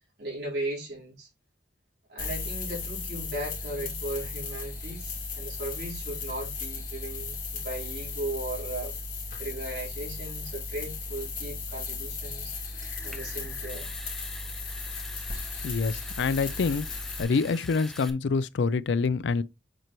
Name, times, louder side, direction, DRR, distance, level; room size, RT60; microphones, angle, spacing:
voice 1, 0.2-1.3 2.1-8.9 9.4-12.5 13.0-13.9 15.1-15.3, right 1 dB, 70° right, 4.0 m, -37 dB
sound 1, 2.2-17.2, left 4 dB, 45° left, 2.5 m, -36 dB
Water tap faucet / Sink (filling or washing) / Trickle dribble, 12.5-18.1, left 1 dB, ahead, 0.5 m, -45 dB
voice 2, 15.6-16.9 17.2-19.4, left 4 dB, 80° left, 0.4 m, -26 dB
7.6 x 4.5 x 3.0 m
head